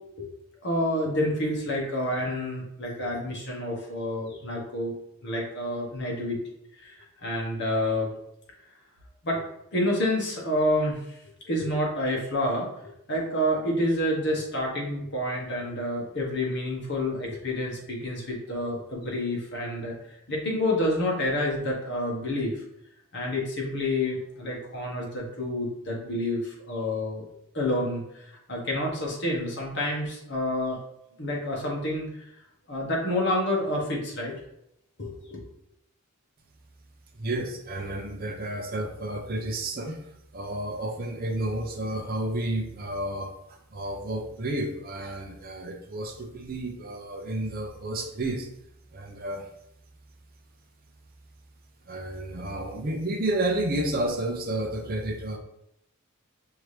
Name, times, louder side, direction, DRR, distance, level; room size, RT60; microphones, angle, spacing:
voice 1, 0.6-4.9 5.2-6.4 6.8-8.1 9.2-9.4 9.7-11.2 11.5-19.9 20.3-22.6 23.1-27.2 27.5-30.8 31.2-32.3 32.7-34.4 35.0-35.4, left 1 dB, 50° left, -2 dB, 1.2 m, -28 dB
voice 2, 37.2-40.0 40.3-48.5 48.9-49.5 51.8-55.4, right 1 dB, 40° right, 3 dB, 0.7 m, -31 dB
5.8 x 2.8 x 3.3 m, 0.78 s
head